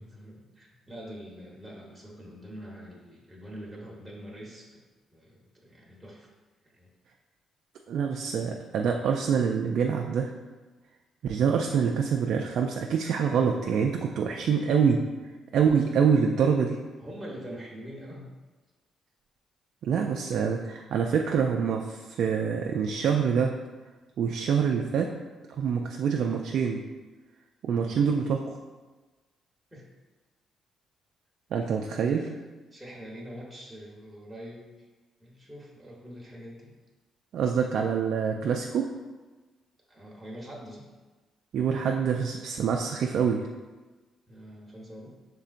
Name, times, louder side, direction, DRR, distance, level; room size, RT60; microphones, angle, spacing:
voice 1, 0.0-4.8 5.1-6.3 6.6-6.9 14.5-14.8 15.6-15.7 17.0-18.3 27.7-28.0 29.7-29.9 32.1-32.4 32.7-34.9 35.2-36.7 39.9-40.8 44.3-45.1, equal, 10° right, -4 dB, 1.1 m, -44 dB
voice 2, 7.9-10.3 11.2-15.0 15.5-16.8 19.8-23.5 24.2-25.1 25.5-26.8 27.6-28.6 31.5-32.2 37.3-38.9 41.5-43.5, right 6 dB, 70° right, 2 dB, 0.3 m, -26 dB
5.5 x 3.7 x 2.5 m, 1.2 s
cardioid pair, 75°, 0 cm